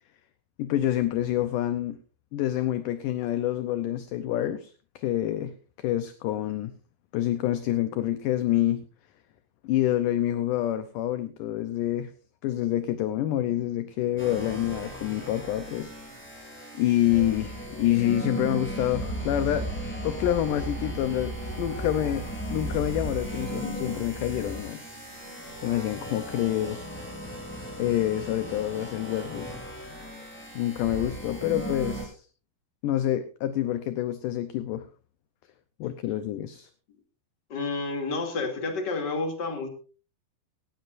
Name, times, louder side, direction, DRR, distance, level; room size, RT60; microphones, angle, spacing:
voice 1, 0.6-2.0 2.3-6.7 7.1-8.8 9.6-12.1 12.4-16.0 16.7-19.7 20.0-22.2 22.5-24.8 25.6-26.9 27.8-29.5 30.6-32.2 32.8-34.9 35.8-36.7, left 13 dB, 75° left, 11 dB, 2.0 m, -27 dB
sound 1, 14.2-32.0, right 1 dB, 5° left, 4.1 m, -36 dB
voice 2, 37.5-39.7, left 3 dB, 30° left, 3 dB, 2.7 m, -30 dB
17.5 x 16.5 x 2.6 m, 0.36 s
omnidirectional pair, 4.4 m